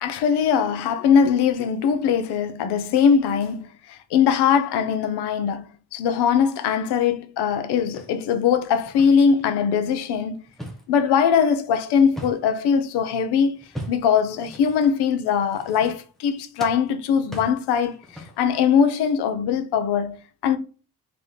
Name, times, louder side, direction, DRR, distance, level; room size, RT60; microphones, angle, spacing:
voice 1, 0.0-5.7 5.9-10.4 10.9-13.5 13.9-18.0 18.4-20.6, left 7 dB, 85° left, 0.7 m, -21 dB
sound 1, 7.5-9.6 10.0-12.7 13.5-16.3 16.6-18.6, equal, ahead, 0.6 m, -40 dB
3.5 x 2.9 x 3.8 m
cardioid pair, 175°, 39 cm